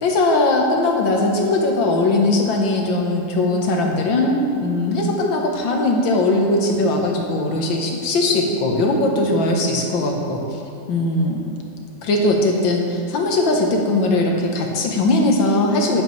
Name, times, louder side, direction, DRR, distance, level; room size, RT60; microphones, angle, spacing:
voice 1, 0.0-10.6 10.9-11.4 12.0-16.0, left 2 dB, 80° left, 1 dB, 1.8 m, -19 dB
10.5 x 9.7 x 3.2 m, 2.6 s
omnidirectional pair, 2.1 m